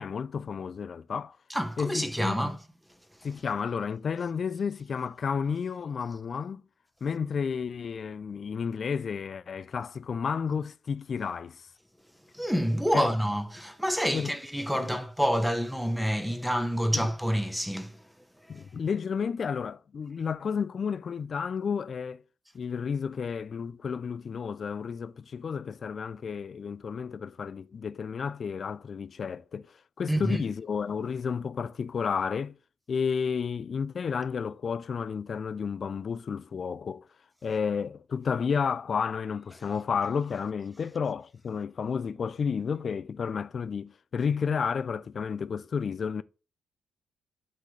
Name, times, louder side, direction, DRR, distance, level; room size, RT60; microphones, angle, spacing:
voice 1, 0.0-1.4 1.8-2.5 3.2-6.6 7.0-11.7 12.9-13.1 14.1-14.3 14.7-15.0 16.9-17.1 18.5-22.2 22.5-32.5 32.9-37.1 37.4-46.2, left 6 dB, 45° left, 0.4 m, -31 dB
voice 2, 1.5-2.6 12.3-18.0 18.5-18.6 30.1-30.4, equal, ahead, 0.8 m, -28 dB
11.5 x 3.9 x 3.2 m
cardioid pair, 90°, 0 cm